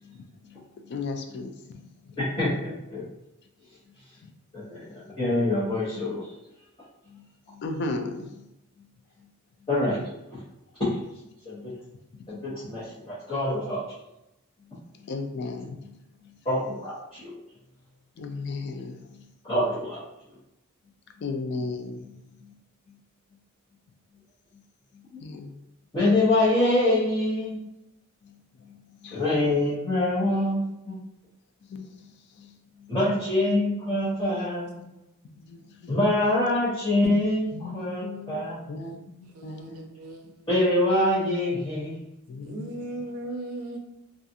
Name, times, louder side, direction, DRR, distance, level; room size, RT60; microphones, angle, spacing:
voice 1, 0.0-2.2 3.9-4.0 4.2-4.3 4.6-4.8 7.1-8.5 8.8-8.9 9.2-9.3 11.7-11.8 12.5-12.7 14.7-16.4 18.2-19.3 21.2-22.5 22.9-23.0 24.5-24.6 24.9-25.5 28.2-29.2 29.5-29.6 31.6-32.9 34.3-34.5 34.7-34.9 35.3-35.9 37.5-39.9 40.2-40.3 42.3-42.8, left 3 dB, 50° left, 0.3 m, -38 dB
voice 2, 2.2-3.0 4.5-6.3 9.7-10.0 10.8-10.9 11.4-11.7 12.3-13.8 16.4-17.3 19.5-20.0 25.9-27.6 29.1-30.9 32.9-34.7 35.9-38.6 40.5-41.9, left 1 dB, 25° left, 0.9 m, -25 dB
voice 3, 38.6-38.9 39.3-40.5 42.4-43.8, right 1 dB, 85° right, 0.5 m, -38 dB
2.4 x 2.4 x 2.6 m
head